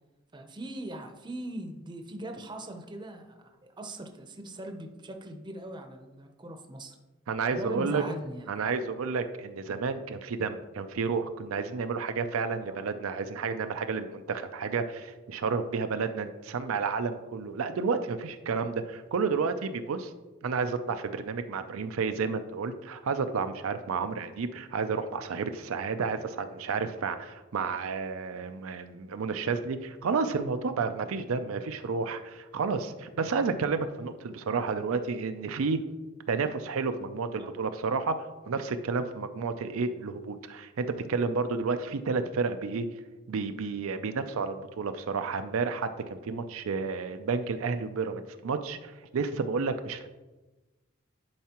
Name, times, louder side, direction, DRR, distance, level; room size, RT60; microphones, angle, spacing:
voice 1, 0.3-6.9 7.5-8.5 37.4-37.5, right 1 dB, 20° right, 5 dB, 0.7 m, -40 dB
voice 2, 7.3-8.0 8.5-20.1 20.4-35.8 36.3-42.9 43.3-50.1, right 4 dB, 90° right, 8 dB, 0.5 m, -31 dB
10.5 x 4.7 x 2.9 m, 1.2 s
head